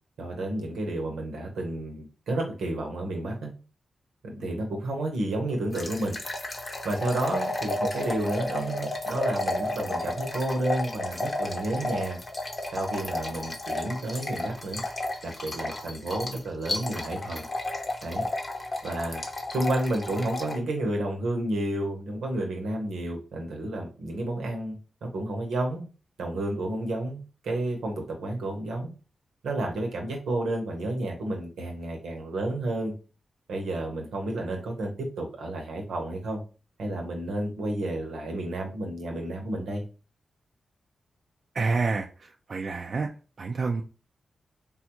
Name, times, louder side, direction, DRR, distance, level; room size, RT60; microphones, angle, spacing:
voice 1, 0.2-3.5 4.2-6.2 6.8-12.2 12.7-14.8 15.2-17.4 18.0-18.2 18.8-19.2 19.5-25.9 26.2-28.9 29.4-32.9 33.5-36.4 36.8-39.8, right 1 dB, 85° right, 1 dB, 0.8 m, -31 dB
sound 1, 5.7-20.6, left 2 dB, 40° left, 0.7 m, -32 dB
voice 2, 41.6-42.1 42.5-43.1 43.4-43.8, right 4 dB, 60° right, 1 dB, 0.3 m, -27 dB
3.4 x 2.3 x 2.9 m, 0.34 s
cardioid pair, 50°, 0 cm